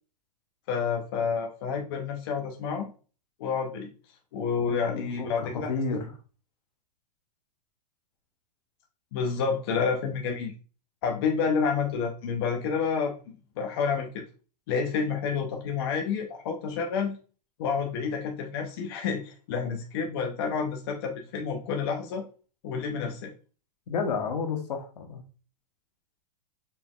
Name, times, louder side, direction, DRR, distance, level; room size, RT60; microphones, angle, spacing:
voice 1, 0.7-2.9 3.4-3.9 4.3-6.0 9.1-10.5 11.0-13.1 13.6-14.2 14.7-17.1 17.6-22.2 22.6-23.3, left 5 dB, 35° left, 2 dB, 0.6 m, -29 dB
voice 2, 4.7-6.1 23.9-25.2, left 5 dB, 75° left, 5 dB, 1.0 m, -31 dB
4.1 x 3.6 x 2.3 m, 0.37 s
supercardioid pair, 165°, 21 cm